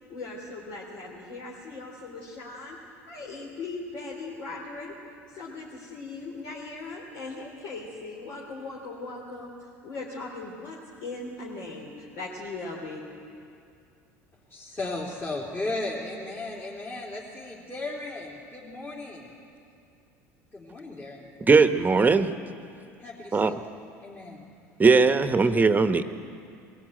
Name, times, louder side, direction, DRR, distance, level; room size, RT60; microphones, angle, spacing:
voice 1, 0.1-2.8 3.1-4.9 5.3-13.1, left 3 dB, 65° left, -3 dB, 3.6 m, -39 dB
voice 2, 14.5-19.3 20.5-21.3 23.0-23.5 24.0-24.5, left 2 dB, 30° left, -5 dB, 3.7 m, -35 dB
voice 3, 21.4-22.3 23.3-23.6 24.8-26.1, right 4 dB, 20° right, 10 dB, 1.1 m, -19 dB
22.0 x 16.0 x 9.1 m, 2.5 s
hypercardioid pair, 75°, 8 cm